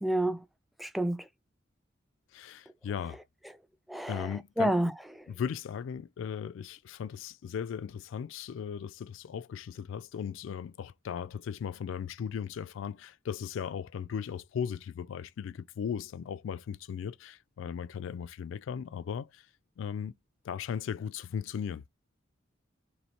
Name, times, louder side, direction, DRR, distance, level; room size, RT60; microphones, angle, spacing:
voice 1, 0.0-0.4 0.8-1.3 3.9-4.9, right 1 dB, ahead, 0.3 m, -29 dB
voice 2, 2.3-3.2 4.1-4.8 5.3-19.5 19.8-20.1 20.4-21.8, left 7 dB, 80° left, 0.3 m, -37 dB
3.1 x 3.0 x 4.3 m
head